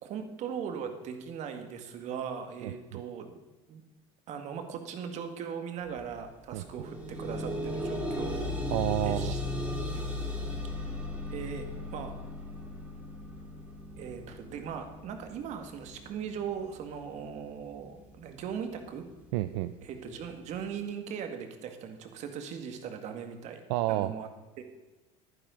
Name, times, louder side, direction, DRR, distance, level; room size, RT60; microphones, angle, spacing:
voice 1, 0.0-3.4 3.7-3.8 4.3-8.5 9.0-9.4 9.9-10.1 10.7-10.9 11.3-12.1 14.0-19.0 19.8-23.6 23.9-24.3 24.6-24.7, right 7 dB, 50° right, 6 dB, 1.8 m, -39 dB
voice 2, 2.6-3.0 6.5-6.6 8.7-9.3 19.3-19.7 23.7-24.1, right 16 dB, 80° right, 11 dB, 0.5 m, -30 dB
sound 1, 5.9-6.0 6.4-17.4 18.2-18.3 18.7-18.8, left 1 dB, 10° right, 2.6 m, -37 dB
11.0 x 9.9 x 5.2 m, 1.2 s
supercardioid pair, 120°, 15 cm